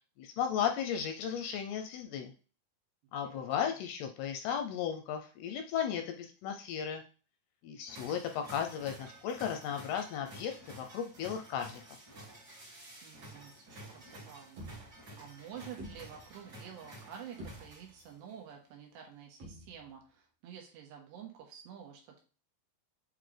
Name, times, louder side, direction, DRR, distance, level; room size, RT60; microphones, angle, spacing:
voice 1, 0.2-2.3 3.1-7.0 7.6-11.8, left 8 dB, 80° left, 5 dB, 2.4 m, -35 dB
voice 2, 3.2-3.7 13.0-22.2, right 8 dB, 80° right, 1 dB, 3.3 m, -50 dB
sound 1, 7.9-18.3, right 1 dB, 30° right, 1.9 m, -51 dB
sound 2, 14.1-14.2 14.6-15.3 15.8-16.6 17.0-17.1 17.4-18.1 19.4-20.0, right 1 dB, 50° right, 2.0 m, -49 dB
8.2 x 3.8 x 3.3 m, 0.37 s
omnidirectional pair, 5.0 m